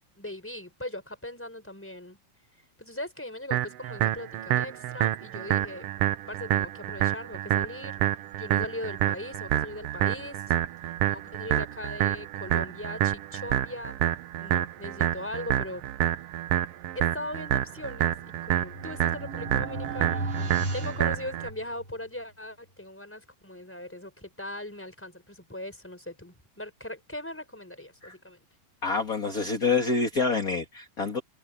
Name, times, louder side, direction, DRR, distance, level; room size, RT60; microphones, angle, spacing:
voice 1, 0.1-2.2 2.8-5.9 6.3-8.0 8.4-10.4 11.1-14.0 14.4-15.9 16.9-18.1 18.4-28.4, left 1 dB, 5° left, 4.7 m, -39 dB
sound 1, 3.5-21.5, right 13 dB, 90° right, 1.3 m, -28 dB
sound 2, 18.1-22.0, right 2 dB, 45° right, 6.9 m, -35 dB
voice 2, 28.8-31.2, left 4 dB, 30° left, 2.4 m, -27 dB
omnidirectional pair, 3.7 m